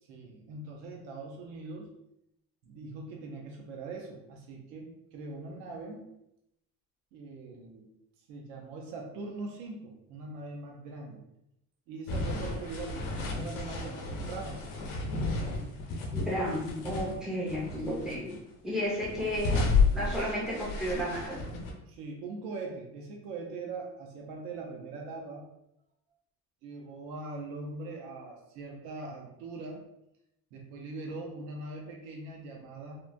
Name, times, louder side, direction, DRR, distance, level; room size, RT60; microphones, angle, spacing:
voice 1, 0.0-1.9 2.6-6.1 7.1-7.9 8.3-11.2 11.9-14.6 21.9-25.5 26.6-29.9 30.5-33.0, right 3 dB, 85° right, 0 dB, 0.7 m, -41 dB
sound 1, 12.1-17.2 17.5-18.4 18.8-21.7, left 4 dB, 85° left, 0.7 m, -32 dB
voice 2, 16.1-18.4 18.6-19.6 19.9-21.4, equal, ahead, -6 dB, 0.3 m, -32 dB
3.0 x 2.1 x 2.4 m, 0.83 s
cardioid pair, 175°, 37 cm